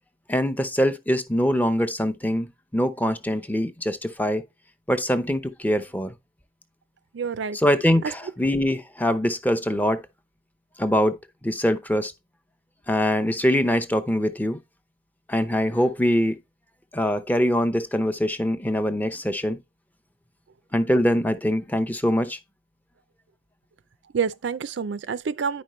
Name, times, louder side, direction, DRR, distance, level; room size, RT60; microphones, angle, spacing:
voice 1, 0.3-2.5 2.7-4.4 4.9-6.1 7.5-10.0 10.8-12.1 12.9-14.6 15.3-16.4 16.9-19.6 20.7-22.4, equal, 10° left, 0.7 m, -23 dB
voice 2, 7.1-7.6 8.0-8.1 24.1-25.6, right 6 dB, 70° right, 0.4 m, -27 dB
9.8 x 5.2 x 3.1 m
head